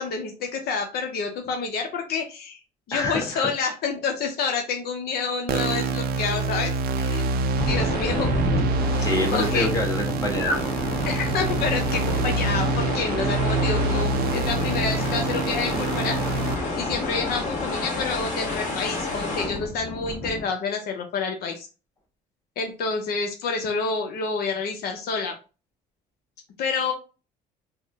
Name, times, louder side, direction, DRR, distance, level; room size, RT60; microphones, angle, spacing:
voice 1, 0.0-2.6 2.9-6.7 7.0-7.3 7.6-8.3 9.3-9.7 11.1-16.2 16.8-21.7 22.6-25.3 26.6-26.9, left 5 dB, 65° left, 3 dB, 0.6 m, -28 dB
voice 2, 2.9-3.5 9.0-10.6, left 1 dB, 20° left, 0 dB, 1.2 m, -26 dB
sound 1, 5.5-16.5, right 3 dB, 65° right, 0.5 m, -26 dB
sound 2, 7.6-20.4, left 2 dB, 45° left, 1.5 m, -29 dB
3.6 x 2.0 x 3.2 m, 0.32 s
cardioid pair, 110°, 17 cm